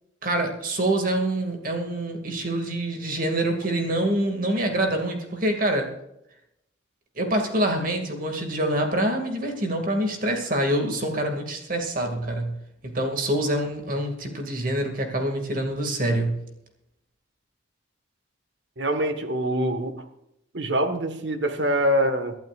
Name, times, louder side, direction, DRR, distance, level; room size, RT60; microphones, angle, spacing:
voice 1, 0.2-5.9 7.2-12.5 12.8-16.4, right 1 dB, 45° right, 3 dB, 2.4 m, -26 dB
voice 2, 18.8-19.9 20.5-22.4, right 1 dB, 65° right, 8 dB, 1.6 m, -24 dB
24.0 x 12.0 x 2.5 m, 0.82 s
head